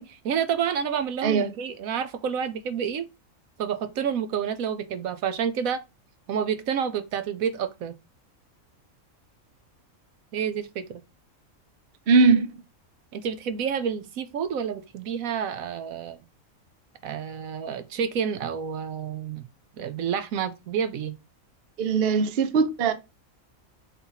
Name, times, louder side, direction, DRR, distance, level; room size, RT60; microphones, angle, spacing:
voice 1, 0.0-3.1 3.6-5.8 6.3-8.0 10.3-11.0 13.1-16.2 17.0-19.4 19.8-21.1, right 7 dB, 80° right, 1.1 m, -29 dB
voice 2, 12.1-12.5 21.8-22.9, right 4 dB, 50° right, 0.8 m, -20 dB
4.2 x 4.0 x 5.6 m
omnidirectional pair, 1.5 m